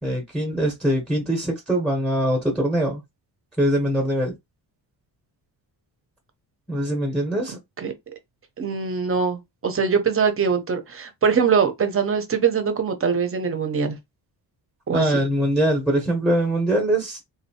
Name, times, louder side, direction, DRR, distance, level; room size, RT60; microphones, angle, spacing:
voice 1, 0.0-3.0 3.6-4.4 6.7-7.6 14.9-17.2, right 1 dB, ahead, 0.9 m, -22 dB
voice 2, 8.6-14.0 14.9-15.0, right 6 dB, 30° right, 0.7 m, -22 dB
3.8 x 2.7 x 2.7 m
wide cardioid pair, 155°, 44 cm